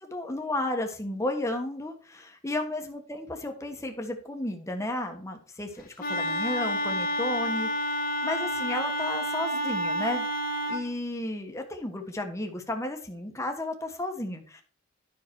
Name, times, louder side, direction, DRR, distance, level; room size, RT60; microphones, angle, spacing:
voice 1, 0.0-10.3 10.6-14.6, left 1 dB, 15° left, 4 dB, 1.3 m, -33 dB
Wind instrument woodwind instrument, 6.0-10.8, equal, 45° left, 1.2 m, -29 dB
10.0 x 5.9 x 4.6 m, 0.41 s
head